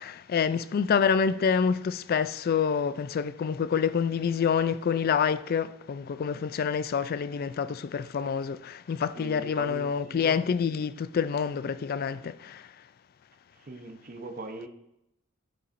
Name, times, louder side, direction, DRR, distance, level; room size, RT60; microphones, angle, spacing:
voice 1, 0.0-12.6, left 6 dB, 50° left, 0.3 m, -27 dB
voice 2, 9.1-10.4 13.6-14.7, right 2 dB, 45° right, 0.8 m, -41 dB
10.0 x 6.9 x 2.6 m
head